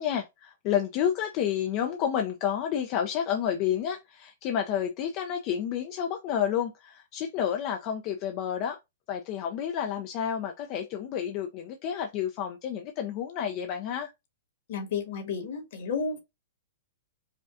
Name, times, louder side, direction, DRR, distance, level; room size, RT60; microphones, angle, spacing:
voice 1, 0.0-8.8 9.1-14.1, left 9 dB, 40° left, 0.5 m, -30 dB
voice 2, 14.7-16.2, left 5 dB, 60° left, 1.7 m, -32 dB
4.9 x 2.3 x 2.5 m
hypercardioid pair, 135°, 0 cm